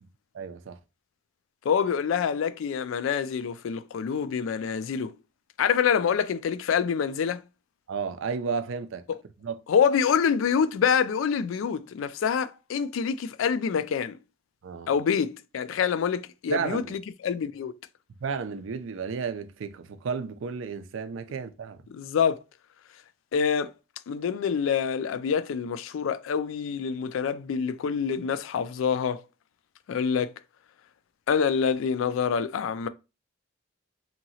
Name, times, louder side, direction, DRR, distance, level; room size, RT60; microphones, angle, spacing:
voice 1, 0.3-0.8 7.9-9.0 9.4-9.6 14.6-14.9 16.5-16.9 18.2-21.8, right 5 dB, 80° right, 0.4 m, -32 dB
voice 2, 1.6-5.1 5.6-7.4 9.1-9.2 9.7-14.2 14.9-17.7 21.9-22.4 23.3-23.7 24.1-29.2 29.9-30.3 31.3-32.9, left 7 dB, 85° left, 0.3 m, -26 dB
2.9 x 2.7 x 2.7 m
head